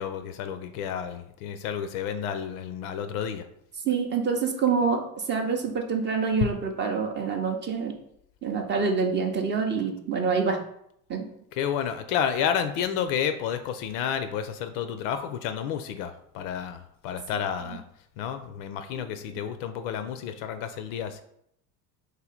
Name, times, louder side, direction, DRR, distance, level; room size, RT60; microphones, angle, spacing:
voice 1, 0.0-3.4 6.4-6.5 11.5-17.8 18.2-21.2, left 8 dB, 55° left, 9 dB, 0.5 m, -30 dB
voice 2, 3.8-8.0 8.4-10.6 11.1-11.3 17.7-17.8 19.0-19.1, right 5 dB, 25° right, 4 dB, 0.5 m, -26 dB
3.1 x 2.6 x 3.8 m, 0.72 s
hypercardioid pair, 70°, 45 cm